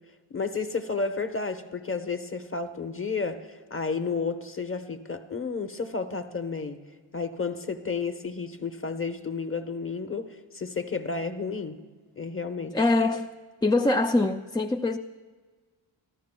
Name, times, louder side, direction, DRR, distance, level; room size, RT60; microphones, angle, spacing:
voice 1, 0.3-6.8 7.1-10.3 10.5-11.8 12.2-12.8, left 4 dB, 25° left, 1.0 m, -31 dB
voice 2, 12.7-13.3 13.6-15.0, left 2 dB, 10° left, 0.4 m, -23 dB
25.0 x 13.5 x 2.3 m
cardioid pair, 55°, 49 cm